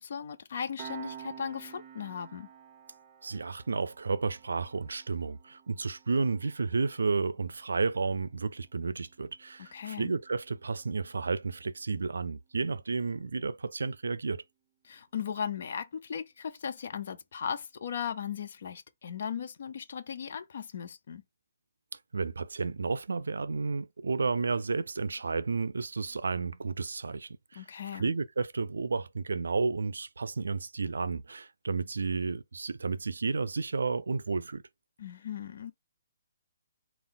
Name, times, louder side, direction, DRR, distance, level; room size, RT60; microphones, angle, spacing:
voice 1, 0.0-2.5 9.6-10.1 14.8-21.2 27.5-28.1 35.0-35.7, left 7 dB, 55° left, 0.6 m, -37 dB
Piano, 0.8-11.9, right 8 dB, 25° right, 0.5 m, -52 dB
voice 2, 3.2-14.4 22.1-27.6 27.9-34.6, right 4 dB, 90° right, 0.4 m, -32 dB
4.0 x 2.4 x 3.9 m
hypercardioid pair, 160°, 0 cm